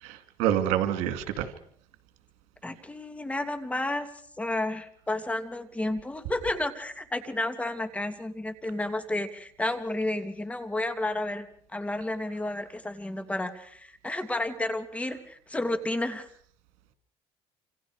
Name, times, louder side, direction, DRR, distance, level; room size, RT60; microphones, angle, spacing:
voice 1, 0.0-1.5, right 11 dB, 90° right, 9 dB, 2.5 m, -27 dB
voice 2, 2.6-4.1 4.4-16.3, left 2 dB, 10° left, 9 dB, 2.5 m, -31 dB
27.5 x 27.0 x 5.0 m, 0.62 s
cardioid pair, 115°, 12 cm